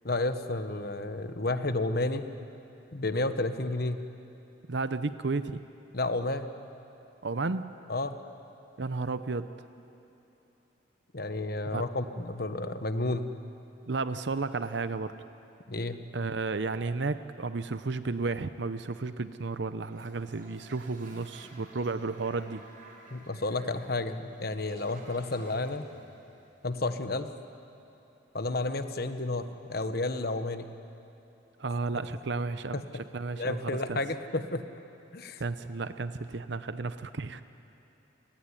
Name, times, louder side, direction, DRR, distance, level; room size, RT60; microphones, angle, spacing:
voice 1, 0.0-2.3 2.9-4.0 5.9-6.5 7.9-8.2 11.1-13.3 15.7-16.0 23.1-25.9 26.6-27.3 28.3-30.7 32.7-32.8 33.4-34.6 35.1-35.4, left 2 dB, 50° left, 9 dB, 1.2 m, -31 dB
voice 2, 4.7-5.6 7.2-7.7 8.8-9.5 11.7-11.8 13.9-15.1 16.1-22.6 31.6-32.8 33.1-34.0 35.4-37.4, right 3 dB, 60° right, 12 dB, 0.7 m, -33 dB
Toilet flush, 19.9-26.8, right 2 dB, 45° right, 4.5 m, -53 dB
29.5 x 18.0 x 10.0 m, 2.8 s
head